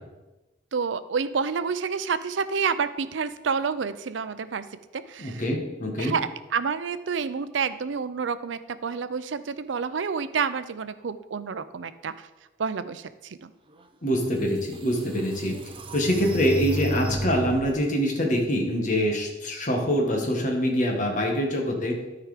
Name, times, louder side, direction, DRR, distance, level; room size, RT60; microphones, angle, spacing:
voice 1, 0.7-4.6 5.1-5.4 6.0-12.1 12.6-13.5, right 5 dB, 80° right, 13 dB, 0.5 m, -29 dB
voice 2, 5.2-6.1 14.0-15.6 15.9-22.0, equal, 40° left, 1 dB, 1.6 m, -25 dB
sound 1, 14.1-14.2 14.7-17.8, right 2 dB, 30° right, 0.7 m, -33 dB
13.0 x 4.8 x 4.9 m, 1.1 s
head